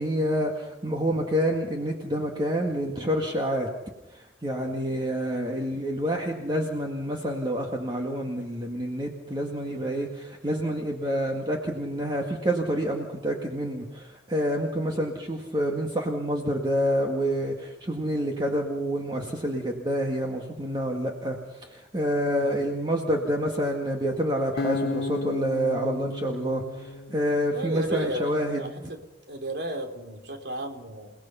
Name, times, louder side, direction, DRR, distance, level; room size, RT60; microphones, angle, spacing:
voice 1, 0.0-3.7 4.1-28.6, equal, 25° right, 1 dB, 1.9 m, -28 dB
Acoustic guitar, 24.6-27.8, left 3 dB, 60° left, 0.7 m, -33 dB
voice 2, 27.5-29.0 29.3-31.1, equal, 65° right, 5 dB, 3.1 m, -33 dB
29.5 x 18.5 x 5.7 m, 1.0 s
head